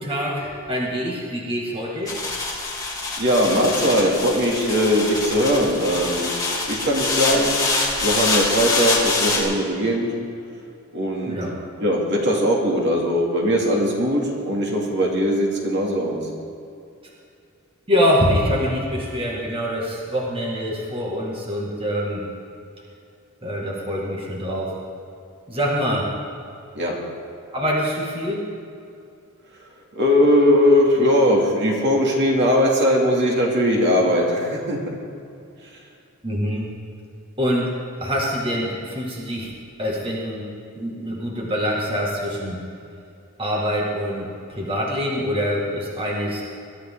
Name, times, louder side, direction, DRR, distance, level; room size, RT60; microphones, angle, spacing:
voice 1, 0.0-2.2 11.3-11.5 17.9-22.2 23.4-24.7 25.5-26.1 27.5-28.5 36.2-36.7 37.4-39.5 39.8-40.5 40.8-42.6 43.4-46.4, equal, 25° right, -3 dB, 2.1 m, -25 dB
sound 1, 2.1-9.4, left 3 dB, 15° left, 3.2 m, -25 dB
voice 2, 3.2-6.4 6.7-7.7 8.0-10.1 10.9-11.4 11.8-16.3 26.7-27.0 29.9-34.8, equal, 55° right, -1 dB, 2.7 m, -20 dB
22.5 x 13.5 x 3.8 m, 2.5 s
head